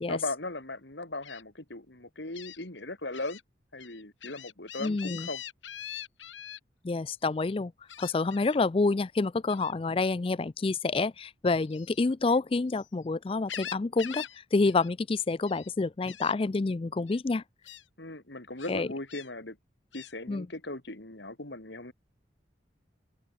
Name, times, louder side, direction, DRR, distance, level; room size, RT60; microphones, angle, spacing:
voice 1, 0.1-3.4 3.7-5.4 18.0-19.6 19.9-21.9, left 2 dB, 65° left, 3.0 m, -38 dB
Gull seagull, 1.2-1.4 2.3-2.6 3.1-3.4 3.8-6.6 7.9-8.6 9.5-9.8 11.6-12.9 13.2-14.4 14.6-14.9 15.2-15.7 16.1-16.3 17.1-17.2 17.6-17.8 18.6-19.3 19.9-20.1, left 10 dB, 85° left, 5.8 m, -43 dB
voice 2, 4.8-5.3 6.8-7.7 8.0-14.3 14.5-17.4 18.7-18.9 20.3-20.5, left 3 dB, 30° left, 0.4 m, -28 dB
head